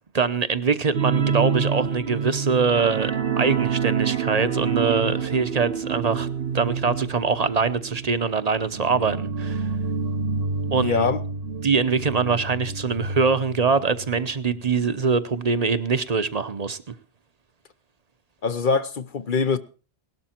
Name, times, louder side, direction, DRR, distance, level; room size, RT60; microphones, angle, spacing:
voice 1, 0.1-6.3 6.5-9.7 10.7-11.1 11.6-16.8, right 5 dB, 40° right, 0.9 m, -23 dB
sound 1, 0.9-14.2 14.5-14.7 15.1-15.2, right 6 dB, 70° right, 1.3 m, -28 dB
voice 2, 10.8-11.2 18.4-19.6, left 5 dB, 55° left, 1.0 m, -23 dB
18.5 x 12.5 x 4.5 m
omnidirectional pair, 1.1 m